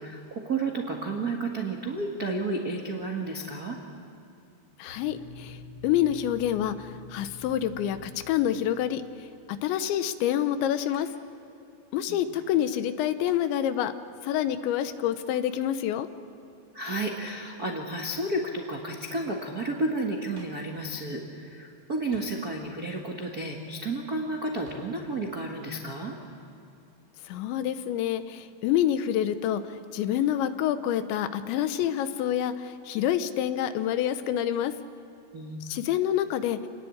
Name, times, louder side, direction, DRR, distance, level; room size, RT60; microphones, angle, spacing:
voice 1, 0.0-3.8 12.1-12.3 16.7-26.2 35.3-35.7, right 2 dB, 75° right, -1 dB, 0.8 m, -32 dB
voice 2, 4.8-11.1 11.9-13.9 14.2-16.1 27.2-34.7 35.7-36.6, left 11 dB, 80° left, 11 dB, 3.2 m, -27 dB
sound 1, 4.9-9.5, left 3 dB, 40° left, 4.3 m, -47 dB
Hands, 10.9-11.3 12.3-12.6 13.3-13.5 14.8-15.1 17.2-17.5 20.3-20.7 22.1-22.7 24.6-25.0, right 1 dB, 15° right, 3.9 m, -53 dB
28.5 x 20.0 x 8.7 m, 2.8 s
omnidirectional pair, 5.2 m